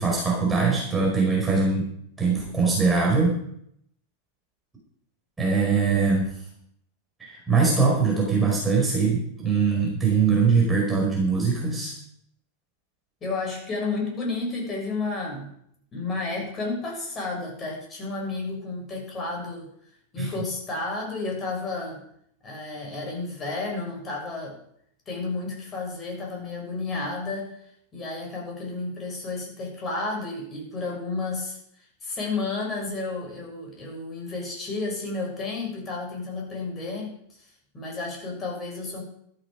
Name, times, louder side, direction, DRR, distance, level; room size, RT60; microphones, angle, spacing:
voice 1, 0.0-1.9 2.2-3.3 5.4-6.2 7.2-11.9 20.2-20.3, right 4 dB, 10° right, -3 dB, 5.3 m, -22 dB
voice 2, 13.2-15.5 15.9-19.7 20.1-22.0 22.4-24.6 25.1-27.6 27.9-31.6 32.0-37.1 37.7-39.0, left 3 dB, 25° left, -1 dB, 7.0 m, -31 dB
14.0 x 12.5 x 5.2 m, 0.71 s
figure-of-eight pair, 90°, 0 cm